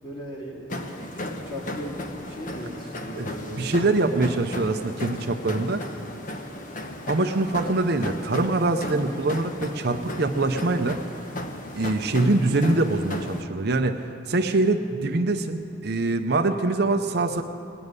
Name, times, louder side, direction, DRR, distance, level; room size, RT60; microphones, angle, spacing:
voice 1, 0.0-4.2, equal, 25° left, -5 dB, 2.8 m, -38 dB
sound 1, 0.7-13.4, left 1 dB, 40° left, 1.0 m, -35 dB
voice 2, 3.5-5.8 7.1-11.0 11.7-17.4, right 2 dB, 55° right, 6 dB, 0.7 m, -24 dB
19.5 x 7.1 x 9.7 m, 2.6 s
head